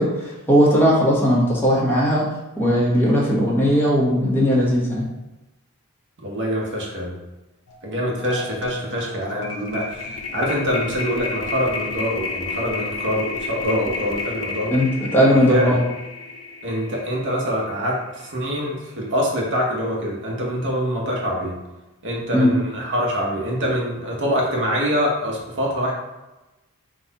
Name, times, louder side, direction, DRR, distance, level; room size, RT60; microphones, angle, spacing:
voice 1, 0.0-2.3 2.6-5.0 14.7-15.8 22.3-22.6, equal, 10° left, -6 dB, 1.1 m, -18 dB
voice 2, 6.2-7.2 7.8-14.7 15.5-15.7 16.6-21.6 22.0-25.9, equal, 55° right, -2 dB, 1.0 m, -24 dB
sound 1, 7.7-7.8 8.1-18.4, left 4 dB, 80° left, 0.6 m, -32 dB
4.1 x 2.4 x 4.0 m, 1.0 s
head